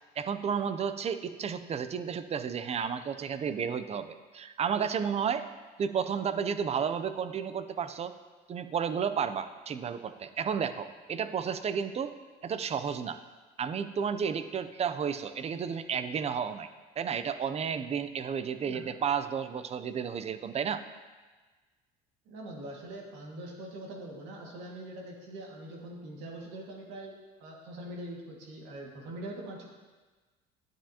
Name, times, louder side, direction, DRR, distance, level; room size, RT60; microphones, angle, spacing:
voice 1, 0.2-5.5 5.8-8.1 8.5-12.1 12.4-13.2 13.6-16.7 17.0-20.8, right 7 dB, 35° right, 11 dB, 0.6 m, -32 dB
voice 2, 18.6-19.0 22.3-29.7, right 1 dB, 80° right, 0 dB, 2.0 m, -43 dB
10.0 x 9.9 x 2.9 m, 1.3 s
supercardioid pair, 100°, 19 cm